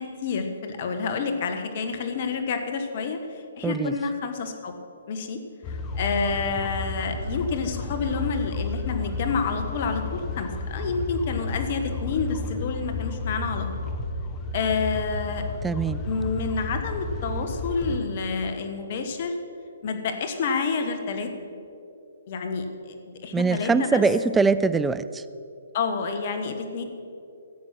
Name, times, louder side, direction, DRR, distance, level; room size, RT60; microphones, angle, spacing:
voice 1, 0.0-4.7 5.1-5.4 5.7-13.7 14.5-15.4 16.0-19.4 19.8-21.3 22.3-22.9 23.2-24.0 25.7-26.8, left 5 dB, 45° left, 6 dB, 1.5 m, -29 dB
voice 2, 3.6-3.9 15.6-16.0 23.3-25.2, right 4 dB, 10° right, 14 dB, 0.4 m, -22 dB
sound 1, 5.6-18.0, left 3 dB, 25° left, 1.2 m, -32 dB
15.5 x 7.6 x 6.0 m, 2.5 s
figure-of-eight pair, 135°, 0 cm